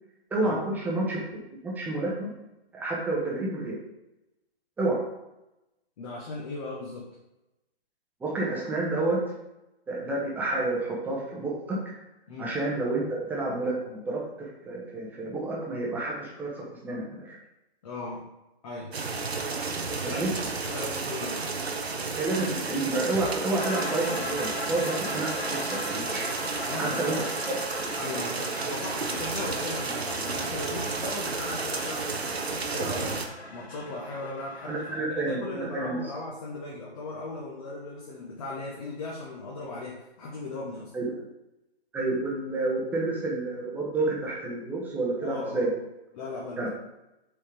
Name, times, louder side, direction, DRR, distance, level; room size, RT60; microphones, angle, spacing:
voice 1, 0.3-1.2 1.6-2.3 2.7-3.7 4.8-5.0 8.2-9.2 9.9-11.8 12.4-17.4 20.0-20.3 22.2-26.3 26.8-27.2 34.7-36.0 40.9-41.2 41.9-45.7 46.6-46.7, right 2 dB, 5° right, -4 dB, 1.2 m, -29 dB
voice 2, 6.0-7.1 12.3-12.5 17.8-18.2 18.6-18.9 20.0-21.6 26.6-27.2 28.0-33.2 33.5-40.9 45.2-45.7 46.1-46.7, left 2 dB, 35° left, -3 dB, 1.4 m, -37 dB
sound 1, 18.9-33.3, right 4 dB, 75° right, 1.2 m, -32 dB
sound 2, 23.6-35.0, left 1 dB, 85° left, 1.2 m, -39 dB
7.5 x 4.4 x 5.0 m, 0.94 s
figure-of-eight pair, 135°, 31 cm